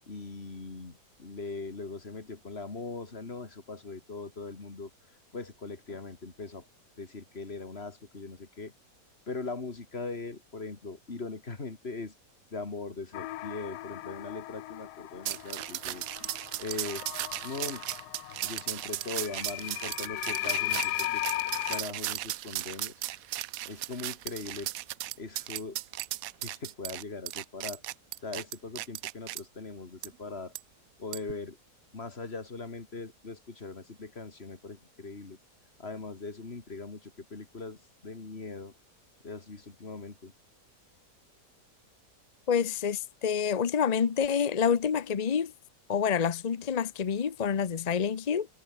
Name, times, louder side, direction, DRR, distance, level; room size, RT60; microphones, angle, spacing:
voice 1, 0.1-6.7 7.0-8.7 9.3-12.1 12.5-16.0 16.6-17.0 17.4-17.8 18.4-21.2 21.7-23.0 23.6-24.7 25.2-25.8 26.4-27.8 28.2-30.5 31.0-31.6 31.9-35.4 35.8-38.7 39.2-40.3, left 3 dB, 35° left, 2.8 m, -40 dB
sound 1, 13.1-21.8, left 16 dB, 75° left, 1.1 m, -37 dB
sound 2, 15.2-29.4 30.0-30.1 30.5-30.6 31.1-31.3, right 15 dB, 70° right, 0.9 m, -36 dB
voice 2, 42.5-45.5 45.9-48.5, left 7 dB, 50° left, 0.4 m, -27 dB
omnidirectional pair, 1.8 m